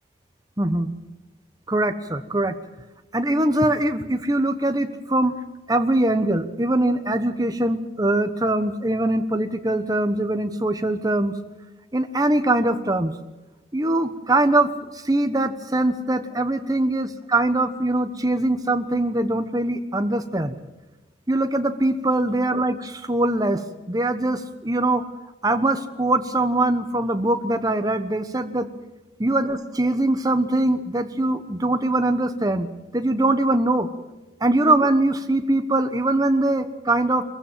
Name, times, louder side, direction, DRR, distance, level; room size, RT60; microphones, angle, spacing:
voice 1, 0.6-0.9 1.7-2.6 3.1-5.3 5.7-11.4 11.9-13.1 13.7-20.5 21.3-25.0 25.4-28.7 29.2-32.7 32.9-33.9 34.4-37.2, right 1 dB, 20° right, 9 dB, 1.2 m, -22 dB
24.0 x 15.0 x 7.5 m, 1.1 s
head